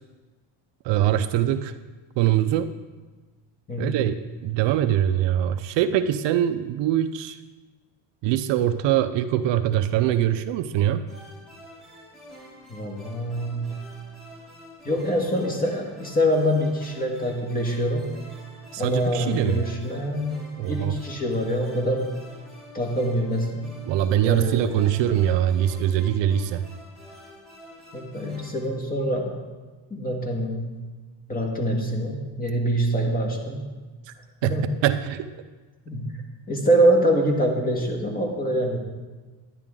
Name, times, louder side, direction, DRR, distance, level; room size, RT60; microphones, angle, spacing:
voice 1, 0.8-1.7 2.2-2.7 3.8-4.2 4.4-7.4 8.2-11.1 18.7-19.7 20.6-21.0 23.8-26.7 34.1-34.2 34.4-35.3, right 11 dB, 65° right, 10 dB, 0.6 m, -23 dB
voice 2, 3.7-4.0 12.7-13.7 14.8-18.1 18.8-22.2 22.7-23.7 24.2-24.8 27.9-29.4 29.9-30.8 31.3-33.6 34.4-34.8 35.9-36.2 36.5-38.8, equal, 20° left, 1 dB, 1.7 m, -25 dB
sound 1, 11.1-28.7, equal, ahead, 3.1 m, -47 dB
10.5 x 10.5 x 3.7 m, 1.3 s
cardioid pair, 130°, 48 cm